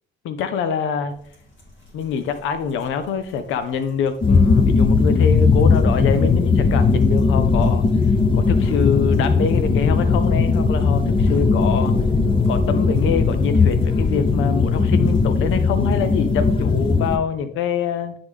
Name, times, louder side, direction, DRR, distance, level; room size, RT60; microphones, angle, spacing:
voice 1, 0.2-1.1 1.9-7.9 8.3-11.9 12.5-18.2, left 7 dB, 85° left, 10 dB, 0.6 m, -24 dB
sound 1, 1.3-1.4 1.6-17.0, left 2 dB, 65° left, 2.5 m, -29 dB
sound 2, 4.2-17.2, left 4 dB, 25° left, 0.5 m, -18 dB
9.8 x 3.4 x 3.5 m, 0.66 s
cardioid pair, 90°, 20 cm